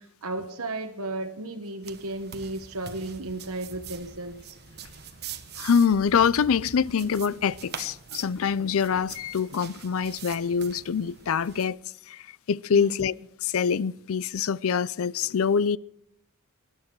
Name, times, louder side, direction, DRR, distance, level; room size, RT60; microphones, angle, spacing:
voice 1, 0.0-4.6 12.7-13.1, right 2 dB, 75° right, 1.1 m, -34 dB
sound 1, 1.8-11.7, right 7 dB, 45° right, 1.1 m, -44 dB
voice 2, 5.6-11.8 12.1-13.1 13.4-15.8, left 6 dB, 65° left, 0.4 m, -25 dB
20.0 x 11.0 x 4.6 m
head